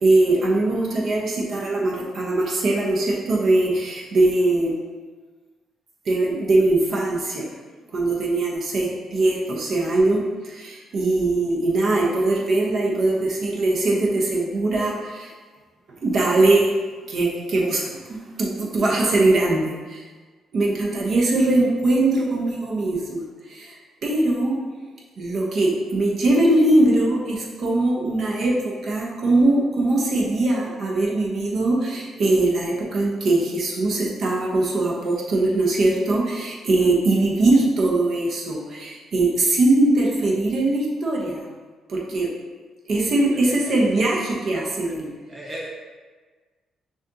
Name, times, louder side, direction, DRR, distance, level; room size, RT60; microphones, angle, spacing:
voice 1, 0.0-4.8 6.1-7.4 7.9-10.2 10.5-15.3 16.0-16.7 17.1-17.8 18.4-20.0 20.5-23.2 24.0-24.5 25.2-41.4 41.9-42.3 42.9-45.1, right 2 dB, 55° right, -3 dB, 0.9 m, -21 dB
voice 2, 43.3-43.7 44.8-44.9 45.3-45.7, right 1 dB, 20° right, -2 dB, 0.5 m, -37 dB
6.3 x 2.5 x 2.8 m, 1.4 s
cardioid pair, 90°, 0 cm